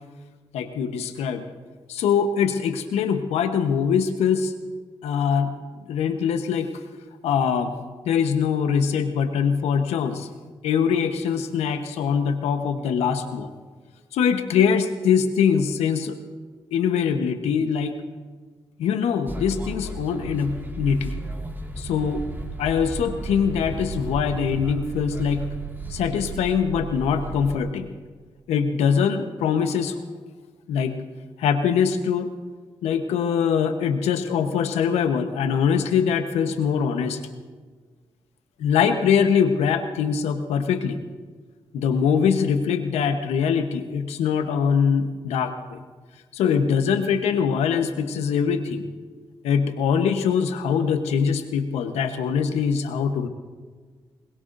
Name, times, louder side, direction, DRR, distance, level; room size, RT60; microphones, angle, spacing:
voice 1, 0.5-1.4 1.9-4.5 5.0-5.5 5.9-6.7 7.2-7.8 8.0-10.3 10.6-13.5 14.1-16.2 16.7-18.0 18.8-21.2 21.8-22.2 22.6-25.5 25.9-27.9 28.5-29.9 30.7-31.0 31.4-32.3 32.8-37.2 38.6-41.0 41.7-45.8 46.3-48.9 49.4-53.3, left 7 dB, 85° left, 8 dB, 1.0 m, -23 dB
sound 1, 19.3-27.6, right 3 dB, 20° right, 2.0 m, -34 dB
24.0 x 21.0 x 2.6 m, 1.5 s
supercardioid pair, 40°, 11 cm